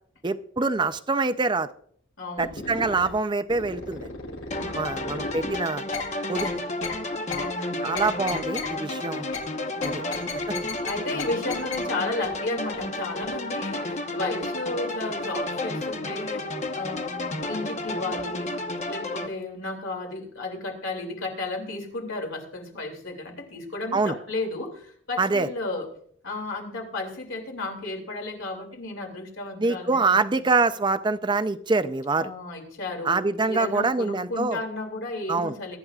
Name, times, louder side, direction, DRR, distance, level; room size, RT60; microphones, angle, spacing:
voice 1, 0.2-1.7 2.4-4.1 4.7-5.8 6.3-6.5 7.3-7.5 7.8-9.3 9.8-10.0 10.5-10.6 11.1-11.2 23.9-24.2 25.2-25.5 29.6-32.3 33.0-34.6 35.3-35.6, right 3 dB, 20° right, 12 dB, 0.5 m, -25 dB
voice 2, 2.2-2.6 4.5-5.3 7.3-8.0 9.7-10.2 10.8-18.5 18.9-25.9 26.2-30.5 32.2-33.2 33.5-35.8, left 2 dB, 65° left, 2 dB, 2.8 m, -33 dB
sound 1, 2.4-3.1 3.5-5.5 5.9-6.0 6.4-6.5 6.8-6.9 7.3-7.4 7.9-8.7 9.3-9.4 9.8-10.9 11.2-11.3 11.5-11.8 12.2-12.3 12.7-12.8 13.2-13.3, left 5 dB, 85° left, 6.9 m, -34 dB
sound 2, 4.5-19.3, left 2 dB, 35° left, 1.0 m, -31 dB
22.5 x 11.5 x 2.4 m, 0.63 s
head